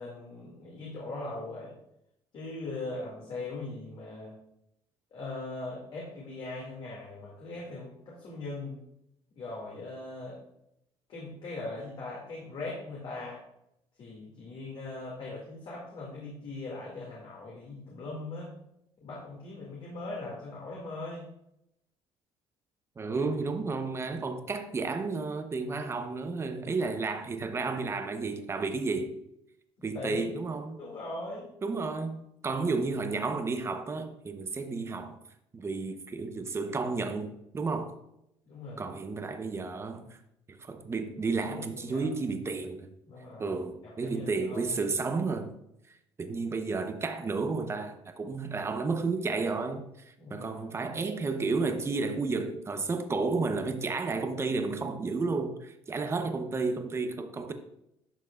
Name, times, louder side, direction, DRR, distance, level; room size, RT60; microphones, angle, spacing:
voice 1, 0.0-1.8 2.3-4.3 5.1-8.8 9.4-10.4 11.1-13.4 14.0-18.6 19.0-21.3 29.8-30.3 30.8-31.5 38.5-39.0 41.4-42.1 43.1-44.9 50.2-50.7, left 2 dB, 55° left, 2.2 m, -40 dB
voice 2, 23.0-29.1 29.8-30.8 31.6-35.2 35.5-38.0 38.8-40.2 40.5-42.9 43.4-45.5 46.2-49.9 50.3-57.5, right 4 dB, 25° right, 0.8 m, -32 dB
11.5 x 6.1 x 2.4 m
cardioid pair, 120°, 11 cm